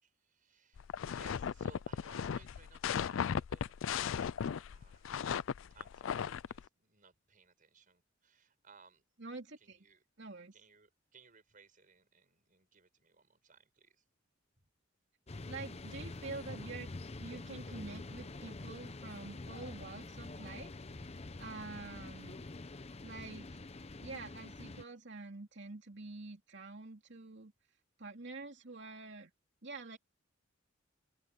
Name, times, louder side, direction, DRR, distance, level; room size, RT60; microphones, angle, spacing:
voice 1, 0.0-5.3 5.7-9.0 9.6-10.0 10.3-14.0, right 4 dB, 40° right, 6.0 m, -63 dB
sound 1, 0.8-6.6, left 7 dB, 70° left, 0.4 m, -36 dB
voice 2, 9.2-9.8 10.2-10.5 15.5-16.9 17.2-22.4 23.0-23.6 24.0-27.5 28.0-29.3 29.6-30.0, right 3 dB, 60° right, 2.8 m, -47 dB
sound 2, 15.3-24.8, left 2 dB, 30° left, 0.8 m, -46 dB
open air
head